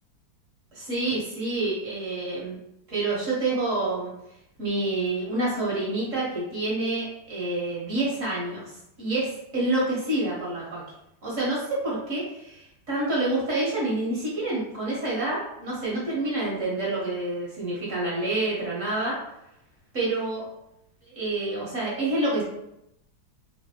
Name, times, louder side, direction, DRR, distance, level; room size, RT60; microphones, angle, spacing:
voice 1, 0.7-2.6 2.9-4.1 4.6-10.8 11.2-19.2 19.9-20.4 21.1-22.4, right 2 dB, 50° right, -6 dB, 1.1 m, -28 dB
3.3 x 2.9 x 2.8 m, 0.82 s
omnidirectional pair, 2.2 m